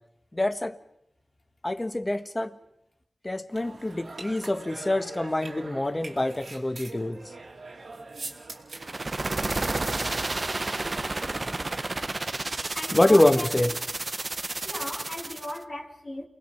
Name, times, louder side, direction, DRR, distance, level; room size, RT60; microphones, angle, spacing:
voice 1, 0.3-0.8 1.6-2.5 3.2-7.2 11.3-11.4 12.9-13.7, left 1 dB, 25° left, 1.4 m, -25 dB
sound 1, 3.5-9.0, right 3 dB, 85° right, 2.7 m, -42 dB
sound 2, 8.7-15.6, right 2 dB, 45° right, 0.8 m, -31 dB
voice 2, 12.7-13.5 14.6-16.3, left 1 dB, 50° left, 3.0 m, -36 dB
29.0 x 20.0 x 5.8 m
wide cardioid pair, 55°, 0 cm